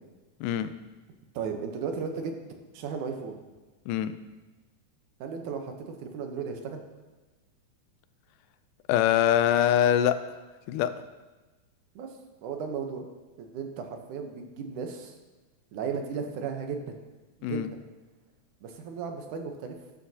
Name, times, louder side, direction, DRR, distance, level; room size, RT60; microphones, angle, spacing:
voice 1, 0.4-0.7 3.9-4.1 8.9-10.2 10.7-10.9 17.4-17.7, left 10 dB, 90° left, 12 dB, 2.1 m, -23 dB
voice 2, 1.4-2.3 2.7-3.4 5.2-6.8 12.0-12.1 12.4-13.1 13.4-15.2 15.7-17.0 17.4-17.8 18.6-19.8, right 6 dB, 75° right, 4 dB, 2.4 m, -35 dB
12.5 x 11.0 x 2.8 m, 1.2 s
omnidirectional pair, 3.6 m